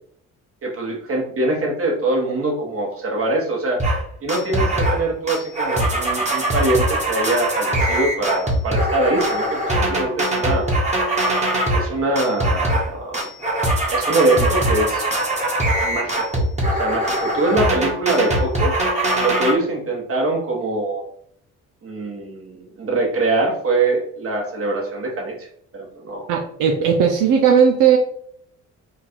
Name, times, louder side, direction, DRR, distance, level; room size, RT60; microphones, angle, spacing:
voice 1, 0.6-3.8 4.2-10.8 11.7-13.3 13.9-15.0 15.8-18.7 19.2-21.0 21.8-25.5 25.7-26.3, right 2 dB, 50° right, 0 dB, 1.6 m, -23 dB
sound 1, 3.8-4.0 4.3-5.0 5.3-11.9 12.2-12.9 13.1-19.5, right 1 dB, 25° right, 1.5 m, -21 dB
voice 2, 26.3-28.0, right 7 dB, 90° right, 2 dB, 0.6 m, -16 dB
3.7 x 2.5 x 4.5 m, 0.63 s
cardioid pair, 90°, 30 cm